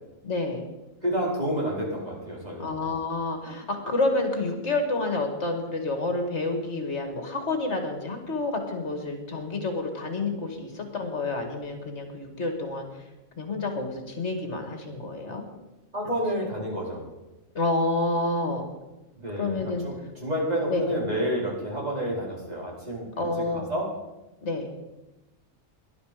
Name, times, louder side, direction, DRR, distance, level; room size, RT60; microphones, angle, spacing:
voice 1, 0.2-0.6 2.6-12.8 13.4-15.4 17.5-18.6 19.4-19.9 20.7-20.8 23.2-23.7 24.4-24.7, left 2 dB, 55° left, 4 dB, 2.5 m, -29 dB
voice 2, 1.0-2.7 15.9-17.0 19.1-23.9, equal, 30° right, -4 dB, 4.5 m, -29 dB
19.0 x 11.5 x 5.1 m, 1.0 s
omnidirectional pair, 1.4 m